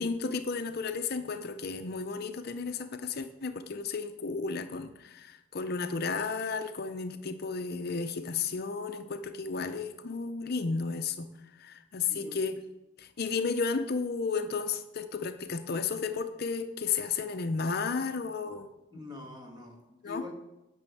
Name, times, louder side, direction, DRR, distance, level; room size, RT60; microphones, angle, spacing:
voice 1, 0.0-11.3 11.6-12.6 13.0-19.0 20.0-20.2, left 4 dB, 50° left, 9 dB, 0.5 m, -33 dB
voice 2, 18.9-20.3, left 3 dB, 20° right, 1 dB, 1.8 m, -44 dB
10.0 x 6.2 x 8.4 m, 0.99 s
head